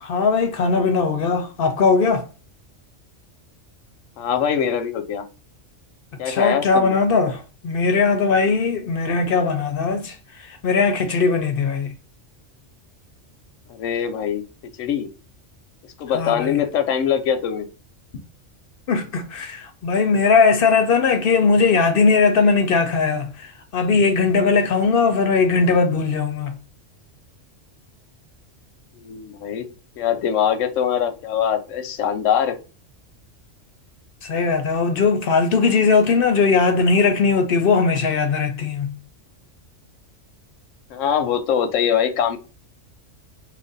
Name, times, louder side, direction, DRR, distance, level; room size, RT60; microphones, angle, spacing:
voice 1, 0.0-2.2 6.3-10.2 10.5-11.9 16.1-16.6 18.9-26.6 34.2-38.9, left 4 dB, 60° left, 0.7 m, -19 dB
voice 2, 4.2-5.3 6.2-7.0 13.7-14.4 14.8-15.1 16.0-17.7 29.0-29.7 30.0-32.6 40.9-42.4, left 8 dB, 90° left, 1.0 m, -22 dB
3.0 x 2.5 x 3.9 m
omnidirectional pair, 1.3 m